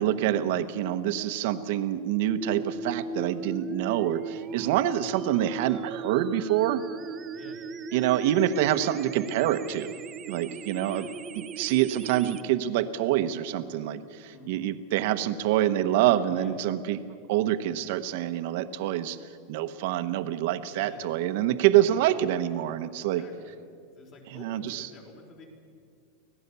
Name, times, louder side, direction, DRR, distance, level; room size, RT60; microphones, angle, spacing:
voice 1, 0.0-6.8 7.9-9.9 10.3-11.1 11.3-19.2 19.5-23.2 24.3-24.9, right 12 dB, 60° right, 10 dB, 1.1 m, -26 dB
sound 1, 2.4-12.4, right 4 dB, 20° right, 0.6 m, -38 dB
voice 2, 4.7-5.0 7.3-7.6 10.8-11.2 14.3-14.7 16.3-16.6 20.7-21.1 22.9-23.6 23.9-25.5, left 4 dB, 35° left, 2 dB, 4.6 m, -49 dB
25.0 x 17.5 x 7.0 m, 2.2 s
supercardioid pair, 155°, 0 cm